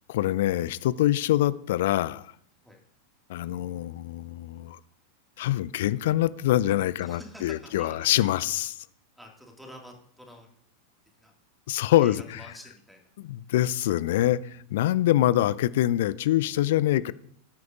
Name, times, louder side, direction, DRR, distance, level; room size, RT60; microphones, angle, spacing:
voice 1, 0.1-2.3 3.3-4.8 5.4-8.8 11.7-12.5 13.2-17.1, left 13 dB, 55° left, 0.4 m, -25 dB
voice 2, 7.0-8.1 9.2-10.5 11.2-11.3 11.8-13.1, equal, ahead, 2.2 m, -48 dB
18.0 x 9.3 x 2.6 m
figure-of-eight pair, 90°, 0 cm